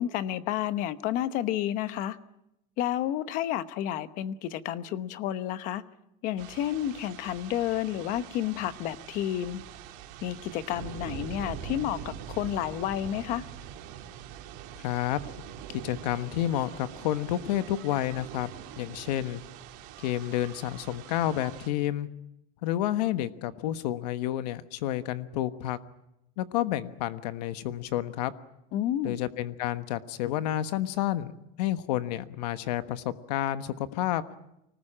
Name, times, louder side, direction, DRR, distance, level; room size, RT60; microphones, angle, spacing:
voice 1, 0.0-2.2 2.8-5.8 6.2-9.6 10.2-13.4 28.7-29.2, left 12 dB, 40° left, 13 dB, 1.0 m, -30 dB
sound 1, 6.4-21.7, right 10 dB, 55° right, 3.2 m, -43 dB
voice 2, 14.8-15.2 15.7-19.4 20.0-22.1 22.6-25.8 26.4-28.3 29.0-31.3 31.6-34.2, left 13 dB, 90° left, 11 dB, 1.3 m, -30 dB
25.5 x 19.5 x 8.8 m, 0.86 s
cardioid pair, 180°, 20 cm